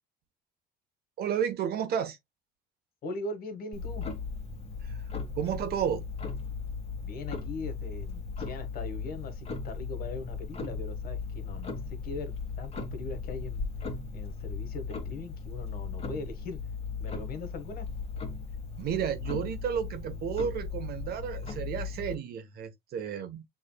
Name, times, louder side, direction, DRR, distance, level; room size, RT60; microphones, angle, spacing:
voice 1, 1.2-2.2 4.8-5.0 5.4-6.1 18.8-23.4, right 8 dB, 65° right, 1.1 m, -32 dB
voice 2, 3.0-4.1 7.0-13.7 14.1-16.6 17.0-17.9, left 3 dB, 60° left, 1.6 m, -40 dB
Clock, 3.7-22.1, left 4 dB, 35° left, 1.7 m, -37 dB
6.8 x 3.4 x 2.3 m
cardioid pair, 110°, 17 cm